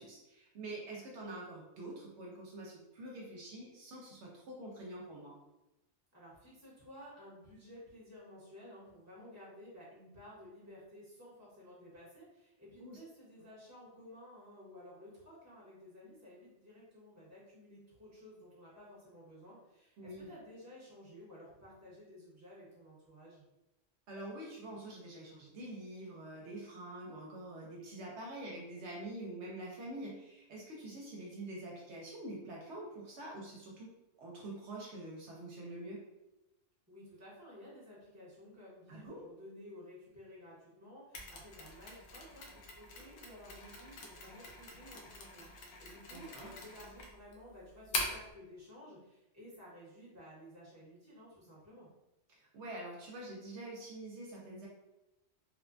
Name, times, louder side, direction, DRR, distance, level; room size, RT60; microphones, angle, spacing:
voice 1, 0.0-5.3 12.8-13.0 20.0-20.3 24.1-33.9 34.2-36.0 38.9-39.2 46.1-46.5 52.3-54.7, right 1 dB, 70° right, -3 dB, 0.8 m, -46 dB
voice 2, 6.1-23.4 36.9-51.9, left 1 dB, 15° right, -7 dB, 0.8 m, -54 dB
Mechanisms, 41.1-48.3, left 2 dB, 75° left, 0.9 m, -43 dB
3.0 x 2.1 x 2.5 m, 0.94 s
omnidirectional pair, 1.3 m